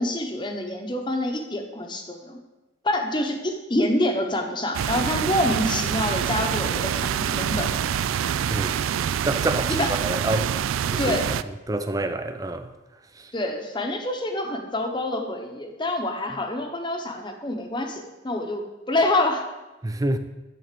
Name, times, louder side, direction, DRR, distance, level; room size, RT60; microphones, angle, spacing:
voice 1, 0.0-2.4 2.8-7.7 9.7-9.9 11.0-11.3 13.3-19.4, left 1 dB, 25° left, 0.9 m, -26 dB
sound 1, 4.7-11.4, right 8 dB, 80° right, 0.3 m, -26 dB
voice 2, 9.2-10.5 10.9-11.2 11.7-12.7 19.8-20.2, right 1 dB, 15° right, 0.5 m, -27 dB
10.5 x 3.9 x 6.8 m
head